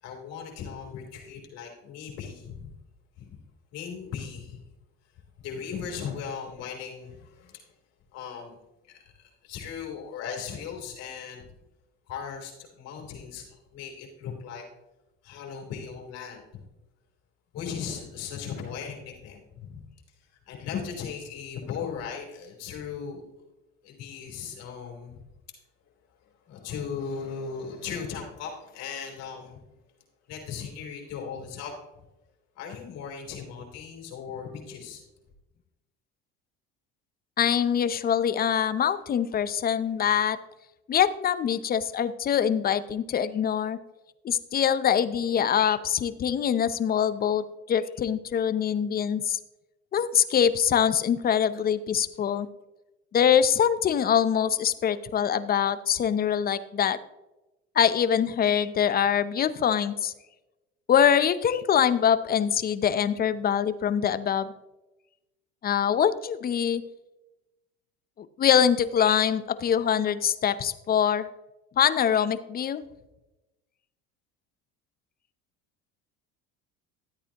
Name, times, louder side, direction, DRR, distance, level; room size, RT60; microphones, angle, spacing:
voice 1, 0.0-2.7 3.2-3.3 3.7-4.6 5.4-7.6 8.1-8.6 8.8-11.5 12.1-14.6 15.2-16.4 17.5-19.8 20.2-23.2 23.8-25.2 26.2-29.6 30.3-31.7 32.6-35.0, left 6 dB, 60° left, 1 dB, 3.6 m, -37 dB
voice 2, 37.4-40.4 40.9-43.8 44.2-49.4 49.9-52.5 53.1-57.0 57.8-60.1 60.9-64.5 65.6-66.8 68.2-71.3 71.8-72.8, left 8 dB, 30° left, 14 dB, 0.7 m, -24 dB
13.0 x 8.8 x 2.9 m, 1.0 s
supercardioid pair, 100°, 29 cm